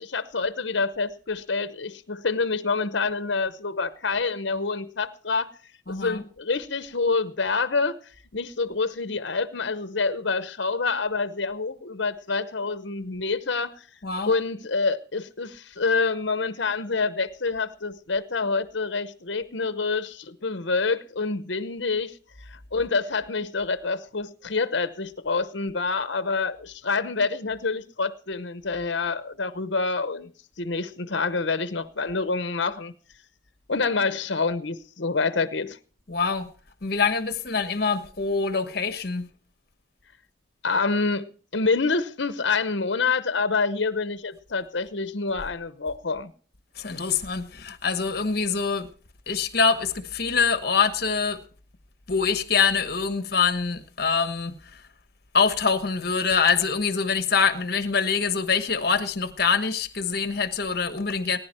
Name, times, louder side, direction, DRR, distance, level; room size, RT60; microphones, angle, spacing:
voice 1, 0.0-5.5 5.9-8.0 8.3-13.7 14.3-22.1 22.5-30.3 30.6-32.9 33.7-35.8 40.6-46.3, left 4 dB, 70° left, 0.9 m, -27 dB
voice 2, 5.9-6.2 14.0-14.3 36.1-36.5 36.8-39.3 46.7-48.9 49.3-51.4 52.1-54.8 55.3-61.4, left 5 dB, 50° left, 1.2 m, -24 dB
20.0 x 10.5 x 4.4 m
head